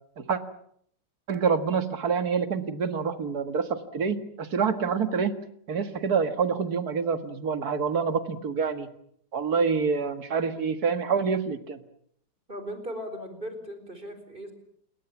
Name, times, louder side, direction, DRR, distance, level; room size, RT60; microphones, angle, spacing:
voice 1, 1.3-5.3 5.7-8.9 9.3-11.8, right 5 dB, 60° right, 9 dB, 2.2 m, -27 dB
voice 2, 12.5-14.5, equal, 30° right, 8 dB, 4.7 m, -38 dB
27.5 x 22.0 x 7.2 m, 0.68 s
omnidirectional pair, 1.9 m